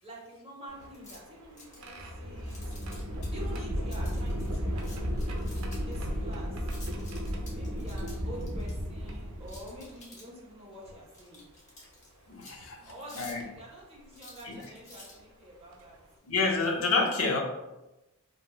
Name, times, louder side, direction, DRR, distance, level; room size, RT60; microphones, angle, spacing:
voice 1, 0.0-2.7 3.3-6.8 7.5-11.4 12.8-15.9, right 1 dB, 25° right, -4 dB, 0.8 m, -47 dB
sound 1, 0.7-10.0 10.9-11.0 12.4-12.6 13.4-13.6 15.2-15.3 15.7-16.0, equal, 75° right, 0.5 m, -34 dB
sound 2, 0.8-1.2 1.6-1.9 2.4-3.3 3.9-6.0 6.7-8.7 9.5-10.4 11.1-12.1 12.4-12.5 13.0-13.4 14.1-15.2, left 2 dB, 35° left, 0.8 m, -50 dB
voice 2, 12.3-12.8 13.1-13.4 14.4-14.6 16.2-17.4, left 3 dB, 70° left, 1 dB, 0.6 m, -28 dB
3.1 x 2.5 x 2.2 m, 0.99 s
head